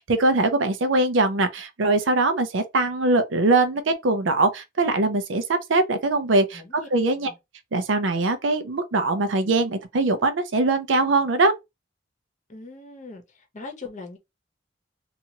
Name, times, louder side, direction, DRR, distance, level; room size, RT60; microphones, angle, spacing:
voice 1, 0.0-7.3 7.7-11.5, right 2 dB, 80° right, 0.5 m, -22 dB
voice 2, 6.5-6.9 7.2-7.4 12.5-13.2 13.5-14.2, left 3 dB, 40° left, 0.8 m, -40 dB
2.9 x 2.4 x 2.7 m
head